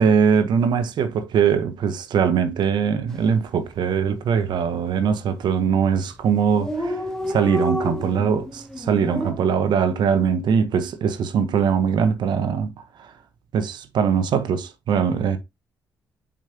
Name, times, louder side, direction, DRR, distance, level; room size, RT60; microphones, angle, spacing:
voice 1, 0.0-7.0 7.3-12.7 13.0-13.1 13.5-15.4, right 7 dB, 70° right, 1.1 m, -21 dB
Dog, 3.1-3.4 3.7-3.8 4.0-4.7 5.3-5.6 5.9-6.0 6.1-6.2 6.4-9.3, left 1 dB, 5° left, 2.0 m, -29 dB
7.3 x 5.1 x 2.9 m
supercardioid pair, 60°, 8 cm